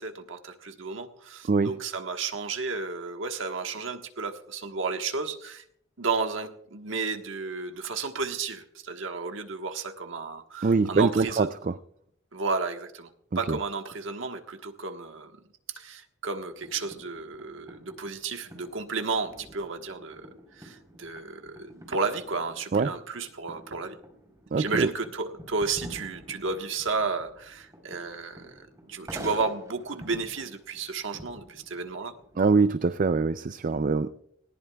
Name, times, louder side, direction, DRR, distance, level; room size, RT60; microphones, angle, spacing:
voice 1, 0.0-5.6 6.0-11.5 12.3-15.3 15.7-24.0 24.6-32.1, right 4 dB, 90° right, 5 dB, 1.4 m, -33 dB
voice 2, 10.6-11.7 13.5-13.6 22.7-22.9 24.5-24.9 32.4-34.1, right 4 dB, 45° right, 12 dB, 0.4 m, -23 dB
sound 1, 16.3-32.8, equal, 15° right, 3.8 m, -48 dB
19.5 x 18.0 x 2.3 m, 0.71 s
head